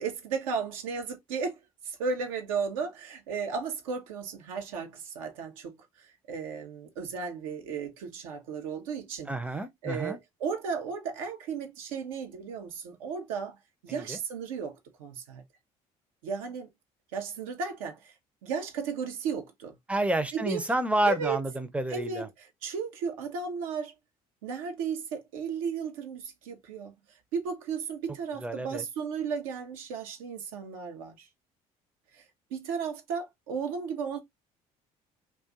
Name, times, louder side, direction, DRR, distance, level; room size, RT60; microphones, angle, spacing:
voice 1, 0.0-1.6 1.8-9.3 9.8-13.6 13.8-15.4 16.2-16.7 17.1-18.1 18.4-19.7 20.3-20.6 21.0-21.4 21.9-23.9 24.4-26.9 27.3-31.3 32.1-32.2 32.5-34.2, right 5 dB, 70° right, 0.7 m, -34 dB
voice 2, 9.3-10.2 13.9-14.2 19.9-22.3 28.4-28.8, right 1 dB, 5° right, 0.6 m, -29 dB
2.5 x 2.3 x 3.6 m
figure-of-eight pair, 55°, 18 cm